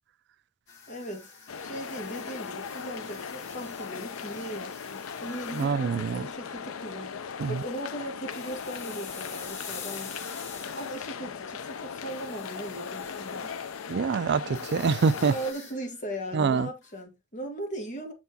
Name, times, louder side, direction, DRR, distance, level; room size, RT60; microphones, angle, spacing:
sound 1, 0.7-6.8 7.1-7.4 8.3-11.1 11.6-13.9 14.4-16.4 16.8-17.0, left 6 dB, 65° left, 1.9 m, -47 dB
voice 1, 0.9-1.3 1.6-7.2 7.5-10.2 10.6-13.5 15.2-18.1, right 1 dB, 40° left, 1.8 m, -38 dB
sound 2, 1.5-15.5, left 6 dB, 85° left, 0.6 m, -38 dB
voice 2, 5.5-6.3 7.4-7.6 13.9-15.3 16.3-16.7, right 5 dB, 55° right, 0.4 m, -25 dB
6.8 x 5.9 x 2.7 m
head